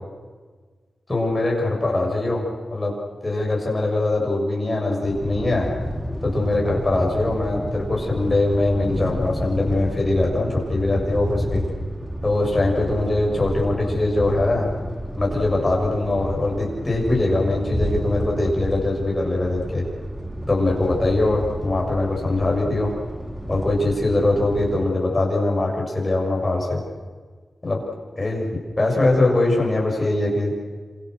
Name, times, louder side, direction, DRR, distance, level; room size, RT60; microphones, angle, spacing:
voice 1, 1.1-2.4 2.7-2.9 3.2-5.7 6.2-11.6 12.2-14.7 15.2-19.8 20.5-22.9 23.5-26.8 27.6-27.8 28.2-28.5 28.8-30.5, left 2 dB, 25° left, -1 dB, 7.3 m, -22 dB
sound 1, 5.0-24.9, equal, 5° right, 2.3 m, -30 dB
29.0 x 27.0 x 6.7 m, 1.5 s
wide cardioid pair, 135°, 0 cm